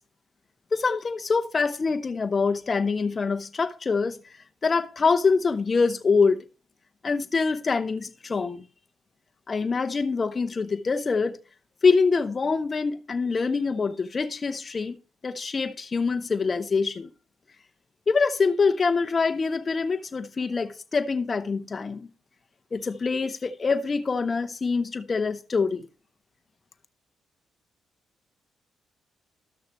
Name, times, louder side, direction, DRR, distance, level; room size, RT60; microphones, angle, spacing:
voice 1, 0.7-4.2 4.6-6.4 7.0-8.6 9.5-11.4 11.8-15.0 15.2-17.1 18.1-22.1 22.7-25.9, left 4 dB, 35° left, 0.8 m, -25 dB
13.0 x 6.5 x 3.0 m
cardioid pair, 90°, 0 cm